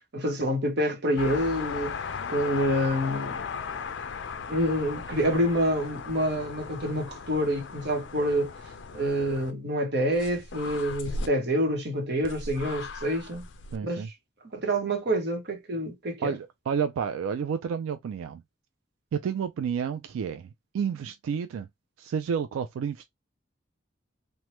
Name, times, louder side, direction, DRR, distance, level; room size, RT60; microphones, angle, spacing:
voice 1, 0.1-2.0 2.3-3.5 3.7-3.9 4.5-8.5 8.9-13.4 13.8-14.0 14.5-16.3, equal, 55° right, 0.9 m, -27 dB
Fox scream, 1.2-9.5 10.1-11.3 12.2-13.8, left 5 dB, 60° left, 0.4 m, -37 dB
voice 2, 13.7-14.1 16.2-18.4 19.1-20.5 20.7-21.7 22.0-23.1, right 7 dB, 85° right, 0.3 m, -30 dB
3.1 x 2.2 x 2.9 m
head